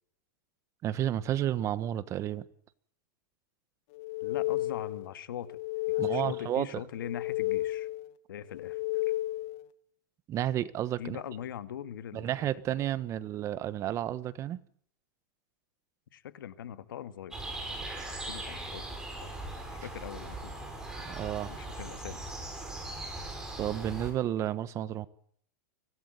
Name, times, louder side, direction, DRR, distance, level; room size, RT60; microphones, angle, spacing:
voice 1, 0.8-2.5 6.0-6.7 10.3-11.2 12.1-14.6 18.0-18.1 21.0-21.5 23.6-25.1, right 12 dB, 25° right, 1.3 m, -31 dB
sound 1, 4.0-5.1 5.5-6.6 7.0-8.1 8.5-9.6, left 17 dB, 45° left, 1.8 m, -32 dB
voice 2, 4.2-5.6 5.9-7.9 8.3-9.0 11.0-12.3 16.1-17.4 17.7-18.9 19.2-20.7 21.5-22.2, left 10 dB, 85° left, 2.1 m, -42 dB
sound 2, 17.3-24.1, right 2 dB, 5° right, 7.1 m, -40 dB
24.5 x 18.0 x 9.3 m
supercardioid pair, 150°, 11 cm